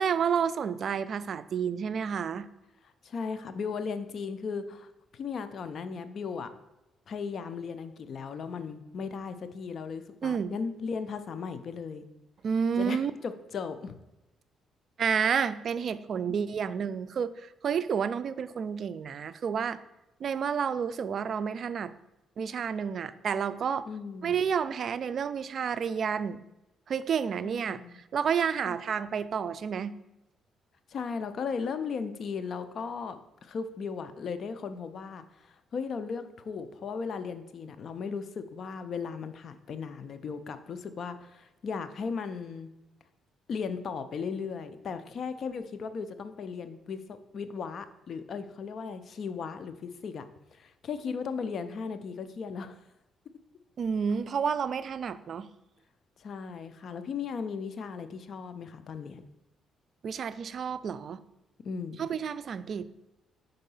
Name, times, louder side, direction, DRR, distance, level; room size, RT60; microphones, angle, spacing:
voice 1, 0.0-2.5 10.2-10.5 12.4-13.1 15.0-19.8 20.2-21.9 22.4-23.9 24.2-26.4 26.9-29.9 53.8-55.5 60.0-61.2 62.0-62.9, right 7 dB, 55° right, 14 dB, 0.3 m, -30 dB
voice 2, 3.0-6.5 7.1-12.1 12.8-14.0 23.9-24.4 27.4-27.9 28.7-28.8 30.9-42.7 43.5-50.2 50.5-52.8 56.2-59.2 61.6-62.0, left 5 dB, 55° left, 10 dB, 0.5 m, -36 dB
5.5 x 3.9 x 5.4 m, 0.95 s
cardioid pair, 90°, 0 cm